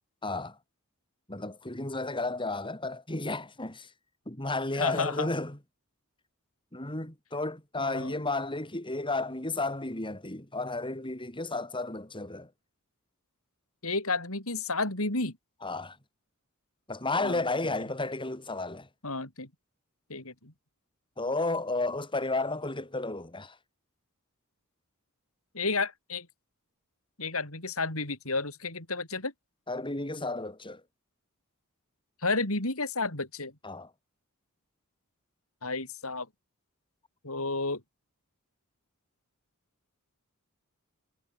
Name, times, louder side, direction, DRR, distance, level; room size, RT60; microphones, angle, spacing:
voice 1, 0.2-0.6 1.3-3.9 4.3-5.6 6.7-12.5 15.6-16.0 16.9-18.9 21.2-23.6 29.7-30.8 33.6-33.9, left 2 dB, 25° left, 5.2 m, -32 dB
voice 2, 4.8-5.3 7.8-8.2 13.8-15.4 17.2-17.4 19.0-19.5 20.1-20.5 25.5-26.3 27.2-29.3 32.2-33.5 35.6-36.3 37.2-37.8, left 3 dB, 70° left, 5.9 m, -31 dB
head